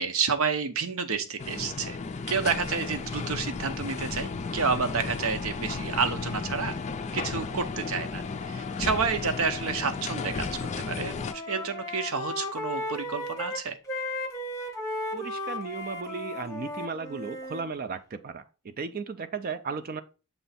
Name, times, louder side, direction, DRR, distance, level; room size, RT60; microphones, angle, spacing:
voice 1, 0.0-2.0 2.3-6.8 7.1-13.8, right 5 dB, 70° right, 0.8 m, -30 dB
sound 1, 1.4-11.3, left 4 dB, 30° left, 0.4 m, -34 dB
Wind instrument woodwind instrument, 10.4-10.8 11.1-17.7, left 1 dB, 15° left, 0.9 m, -35 dB
voice 2, 15.1-20.0, right 5 dB, 40° right, 0.4 m, -35 dB
6.9 x 3.3 x 4.1 m
head